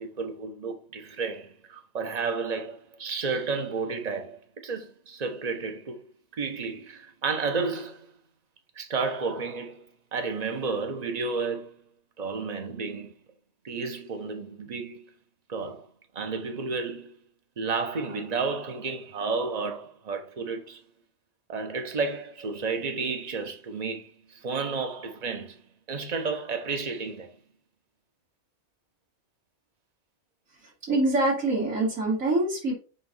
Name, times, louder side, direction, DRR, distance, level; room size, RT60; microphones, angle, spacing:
voice 1, 0.0-6.1 6.3-8.1 8.8-9.9 10.1-11.8 12.2-13.2 13.6-15.1 15.5-15.9 16.1-17.1 17.6-20.8 21.5-25.6 25.9-27.4, right 4 dB, 35° right, 0.9 m, -32 dB
voice 2, 30.6-32.7, right 2 dB, 70° right, 3.1 m, -25 dB
7.0 x 2.6 x 5.5 m
omnidirectional pair, 1.4 m